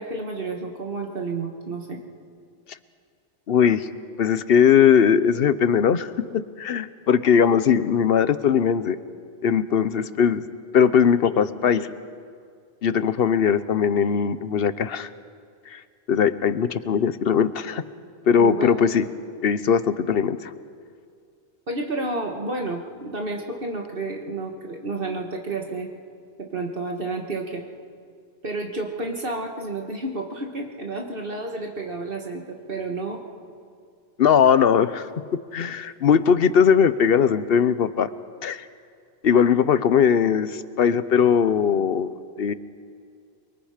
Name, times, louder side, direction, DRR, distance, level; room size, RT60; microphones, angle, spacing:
voice 1, 0.0-2.0 18.4-18.7 21.7-25.9 26.4-27.6 28.4-33.2, right 2 dB, 60° right, 1 dB, 1.8 m, -30 dB
voice 2, 3.5-3.9 4.2-9.0 9.4-10.4 10.7-11.9 12.8-15.1 15.7-15.8 16.1-17.8 18.3-19.1 19.4-20.5 34.2-38.1 38.4-38.6 39.2-42.1 42.4-42.5, left 7 dB, 70° left, 14 dB, 1.0 m, -20 dB
28.5 x 23.0 x 5.1 m, 2.3 s
omnidirectional pair, 1.1 m